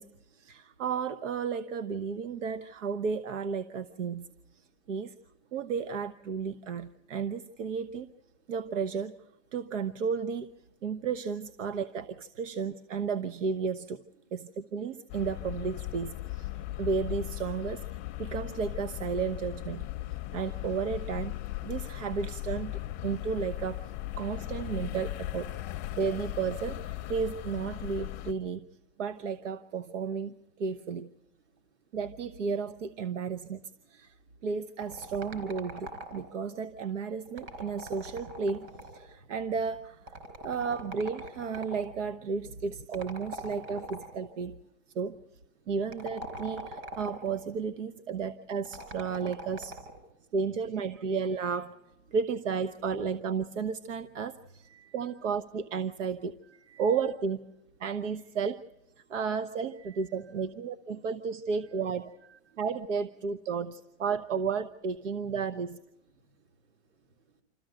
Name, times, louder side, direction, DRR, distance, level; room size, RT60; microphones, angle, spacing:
voice 1, 0.0-4.3 4.5-5.1 5.5-8.1 8.5-9.1 9.5-10.5 10.8-14.0 14.3-16.5 16.8-17.9 18.2-19.9 20.3-21.4 21.6-23.9 24.2-25.6 26.0-28.6 29.0-31.1 31.9-33.6 33.9-34.1 34.4-44.6 44.9-45.2 45.7-49.8 50.3-51.7 52.1-54.7 54.9-56.3 56.8-57.4 57.8-58.6 59.1-62.1 62.6-65.8, right 5 dB, 85° right, 12 dB, 1.0 m, -33 dB
sound 1, 15.1-28.3, left 16 dB, 20° left, 0.6 m, -38 dB
sound 2, 34.8-36.4 37.3-39.1 40.1-41.9 42.9-44.3 45.8-47.4 48.7-50.0, equal, 35° right, 3.9 m, -42 dB
voice 2, 54.6-55.0 56.5-57.0 59.0-59.1 59.8-60.1 62.3-62.6 66.1-67.4, right 8 dB, 65° right, 4 dB, 4.2 m, -62 dB
27.0 x 14.5 x 7.8 m, 1.0 s
supercardioid pair, 165°, 37 cm